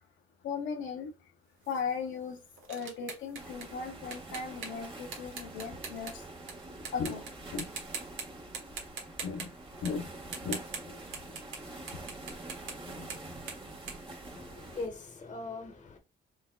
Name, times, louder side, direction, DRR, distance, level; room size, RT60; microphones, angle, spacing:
voice 1, 0.4-1.1 1.7-2.4 2.7-6.2 6.9-7.2 7.5-7.7 9.2-9.5 9.8-10.0 10.4-10.6 10.9-11.0 12.9-13.1, left 5 dB, 75° left, 0.7 m, -36 dB
sound 1, 1.6-6.5 6.9-7.3 7.6-8.2 8.5-11.6 11.9-14.9, right 5 dB, 80° right, 1.3 m, -42 dB
sound 2, 3.3-14.9, right 2 dB, 25° right, 1.4 m, -46 dB
voice 2, 14.3-16.0, left 3 dB, 40° left, 1.2 m, -41 dB
3.9 x 3.6 x 2.3 m
cardioid pair, 90°, 20 cm